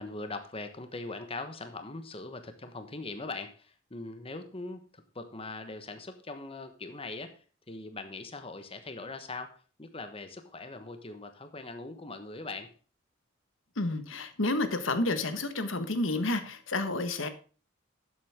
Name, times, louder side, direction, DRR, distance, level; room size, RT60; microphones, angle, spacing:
voice 1, 0.0-12.7, left 3 dB, 30° left, 8 dB, 1.2 m, -41 dB
voice 2, 13.8-17.3, left 2 dB, 75° left, 10 dB, 1.4 m, -30 dB
12.0 x 8.0 x 3.6 m, 0.37 s
head